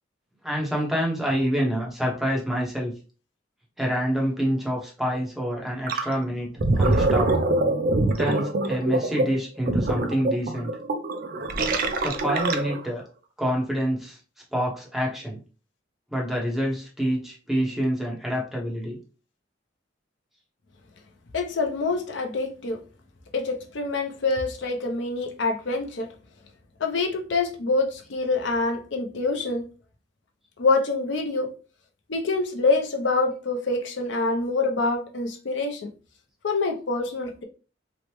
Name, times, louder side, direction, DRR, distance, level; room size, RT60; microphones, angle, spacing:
voice 1, 0.4-2.9 3.8-6.5 6.7-7.4 8.2-10.7 12.0-13.0 13.4-14.2 14.5-15.4 16.1-19.0, equal, ahead, 0.8 m, -27 dB
Gurgling, 5.9-6.1 6.5-12.9, right 2 dB, 50° right, 0.4 m, -24 dB
voice 2, 21.3-22.8 23.3-26.1 26.8-29.6 30.6-31.5 32.1-35.9 36.4-37.4, left 3 dB, 70° left, 0.6 m, -26 dB
3.1 x 2.1 x 2.9 m
head